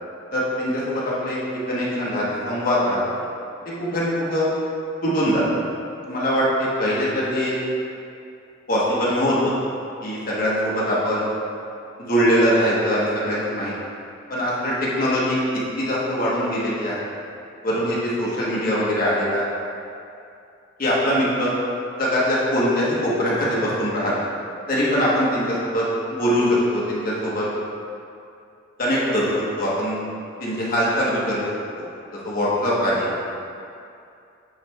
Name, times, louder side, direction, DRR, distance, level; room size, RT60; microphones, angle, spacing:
voice 1, 0.3-1.4 1.7-3.0 3.8-4.5 5.0-5.4 6.1-7.6 8.7-9.5 10.0-11.2 12.0-13.7 14.3-15.4 15.8-16.9 17.6-19.4 20.8-21.5 22.0-24.2 24.7-25.8 26.1-27.5 28.8-30.0 30.4-31.4 31.8-31.9 32.2-33.1, equal, 45° left, -7 dB, 1.3 m, -22 dB
8.6 x 3.3 x 3.5 m, 2.5 s
head